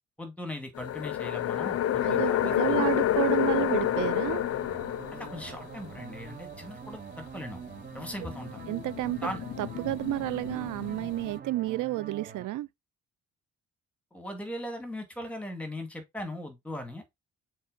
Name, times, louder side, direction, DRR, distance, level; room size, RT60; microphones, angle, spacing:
voice 1, 0.2-2.9 5.1-7.6 7.9-8.7 9.2-9.4 14.1-17.2, left 1 dB, 5° left, 2.2 m, -39 dB
sound 1, 0.7-5.8 8.0-11.4, left 12 dB, 55° left, 0.5 m, -29 dB
voice 2, 2.0-4.4 8.7-9.2 9.6-12.7, right 16 dB, 80° right, 0.5 m, -31 dB
sound 2, 3.5-12.5, right 7 dB, 30° right, 0.9 m, -45 dB
6.4 x 4.4 x 3.9 m
cardioid pair, 140°, 31 cm